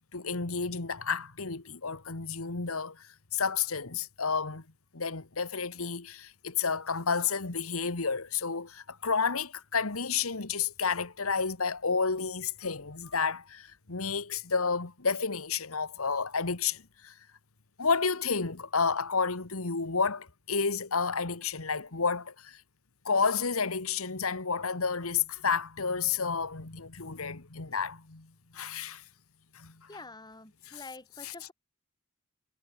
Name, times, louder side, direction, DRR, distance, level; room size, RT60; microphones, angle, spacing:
voice 1, 0.1-4.6 4.9-17.1 17.8-22.6 23.1-28.3 28.5-29.0 29.5-29.9 30.7-30.8 31.2-31.3, left 5 dB, 90° left, 1.7 m, -31 dB
voice 2, 29.9-31.5, left 2 dB, 20° left, 4.7 m, -47 dB
head